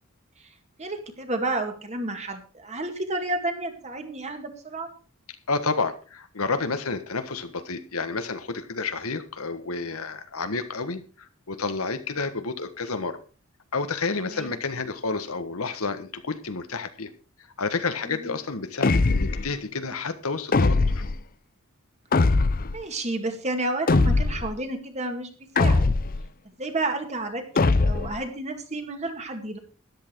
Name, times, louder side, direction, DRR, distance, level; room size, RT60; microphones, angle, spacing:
voice 1, 0.8-4.9 14.2-14.5 18.0-18.4 22.7-25.3 25.6-25.9 26.6-29.6, right 2 dB, 30° right, 5 dB, 2.1 m, -31 dB
voice 2, 5.5-13.2 13.7-17.1 17.6-21.0, left 4 dB, 80° left, 10 dB, 1.4 m, -30 dB
sound 1, 18.8-19.5 20.5-21.2 22.1-22.8 23.9-24.5 25.6-26.2 27.6-28.2, left 3 dB, 40° left, 0.6 m, -21 dB
13.0 x 11.0 x 4.6 m, 0.38 s
head